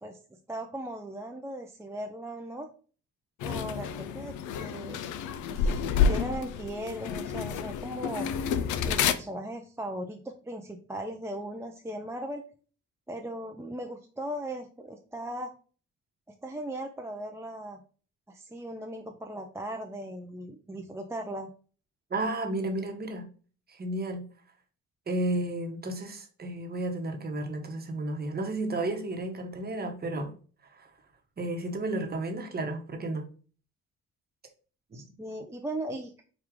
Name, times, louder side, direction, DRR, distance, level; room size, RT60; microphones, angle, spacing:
voice 1, 0.0-2.7 3.4-5.0 5.5-8.3 8.8-12.4 13.1-15.5 16.4-17.8 18.3-21.5 34.9-36.1, right 1 dB, 10° right, 3 dB, 0.4 m, -38 dB
sound 1, 3.4-9.1, left 6 dB, 75° left, 0.5 m, -29 dB
voice 2, 22.1-23.3 23.7-24.2 25.1-30.3 30.7-30.9 31.4-33.2 34.9-35.0, right 2 dB, 30° right, 4 dB, 1.0 m, -32 dB
4.7 x 2.4 x 3.5 m, 0.39 s
cardioid pair, 90°, 30 cm